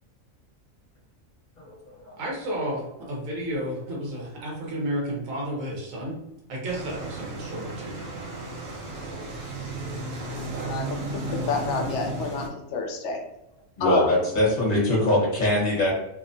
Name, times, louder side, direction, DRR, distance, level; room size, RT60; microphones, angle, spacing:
voice 1, 1.6-2.2 9.0-9.3 10.1-10.3 13.8-15.9, left 1 dB, 40° left, -4 dB, 1.1 m, -23 dB
voice 2, 2.2-6.2 6.5-8.0, right 1 dB, 75° right, -3 dB, 1.2 m, -32 dB
sound 1, 6.6-12.5, right 2 dB, 60° right, 0.8 m, -34 dB
voice 3, 11.4-13.2 13.8-14.2, left 4 dB, 70° left, 2 dB, 0.8 m, -28 dB
2.8 x 2.0 x 2.5 m, 0.86 s
omnidirectional pair, 1.4 m